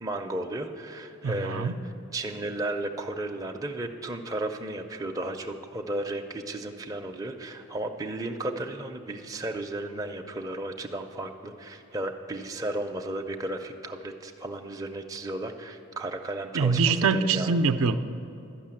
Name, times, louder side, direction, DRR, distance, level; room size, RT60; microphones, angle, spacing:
voice 1, 0.0-1.7 2.1-16.8 17.1-17.5, right 1 dB, 15° right, 3 dB, 0.5 m, -34 dB
voice 2, 1.2-1.8 16.5-17.9, right 4 dB, 70° right, 9 dB, 0.4 m, -24 dB
12.0 x 6.3 x 8.8 m, 2.9 s
head